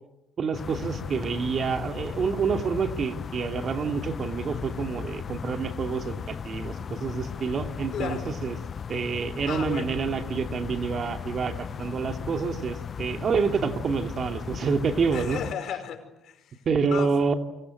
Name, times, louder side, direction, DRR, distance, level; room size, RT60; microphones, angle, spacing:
voice 1, 0.4-8.5 8.9-15.4 16.7-17.4, right 5 dB, 50° right, 6 dB, 2.7 m, -28 dB
sound 1, 0.5-15.5, left 7 dB, 45° left, 0.9 m, -36 dB
voice 2, 7.9-8.3 9.5-10.0 15.1-17.1, left 9 dB, 70° left, 7 dB, 5.0 m, -35 dB
29.0 x 24.5 x 7.8 m, 0.90 s
cardioid pair, 85°, 0 cm